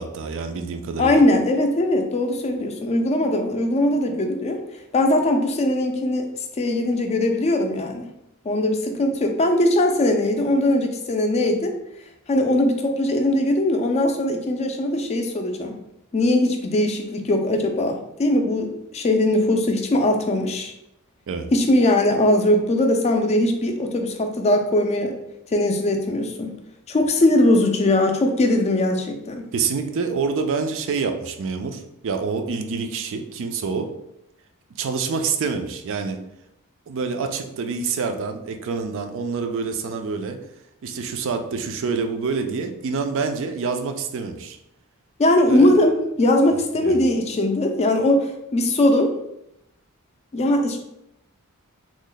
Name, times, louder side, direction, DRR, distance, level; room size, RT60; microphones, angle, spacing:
voice 1, 0.0-1.2 21.3-21.5 29.5-33.9 34.8-36.2 36.9-40.4 40.8-44.6 45.4-45.8 46.8-47.0, right 5 dB, 60° right, 6 dB, 0.4 m, -27 dB
voice 2, 1.0-4.6 4.9-6.3 6.6-8.1 8.5-11.7 12.3-15.7 16.1-20.7 21.5-25.1 25.5-26.6 26.9-29.4 45.2-49.1 50.3-50.8, left 1 dB, 30° left, 4 dB, 0.4 m, -20 dB
3.1 x 2.0 x 3.8 m, 0.81 s
head